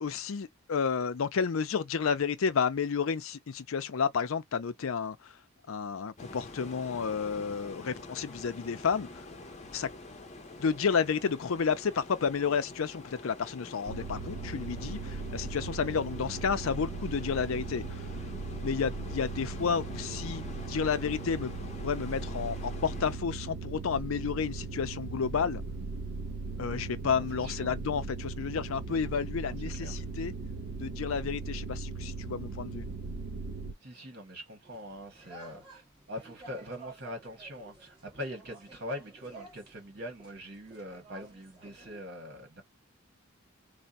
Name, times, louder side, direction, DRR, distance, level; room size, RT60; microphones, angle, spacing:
voice 1, 0.0-5.4 5.7-9.1 9.7-9.9 10.6-18.0 18.6-21.5 21.8-25.6 26.6-30.3 30.8-32.9, left 6 dB, 70° left, 0.5 m, -31 dB
sound 1, 6.2-23.2, left 2 dB, 30° left, 0.7 m, -46 dB
sound 2, 13.9-33.7, right 3 dB, 85° right, 0.9 m, -38 dB
voice 2, 27.1-27.8 29.7-30.1 33.8-35.8 36.1-42.6, left 1 dB, 45° right, 1.7 m, -42 dB
sound 3, 34.6-42.0, right 3 dB, 20° right, 1.5 m, -53 dB
3.4 x 2.1 x 4.1 m
head